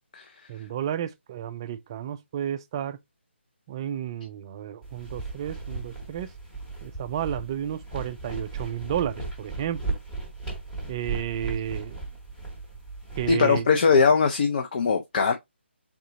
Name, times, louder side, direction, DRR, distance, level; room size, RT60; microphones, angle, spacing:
voice 1, 0.5-3.0 3.7-6.3 6.8-10.0 10.9-12.1 13.2-13.7, right 10 dB, 25° right, 0.3 m, -32 dB
sound 1, 4.8-13.3, right 3 dB, 10° left, 1.0 m, -36 dB
voice 2, 13.3-15.3, left 5 dB, 45° left, 0.5 m, -21 dB
3.8 x 3.6 x 2.8 m
figure-of-eight pair, 155°, 7 cm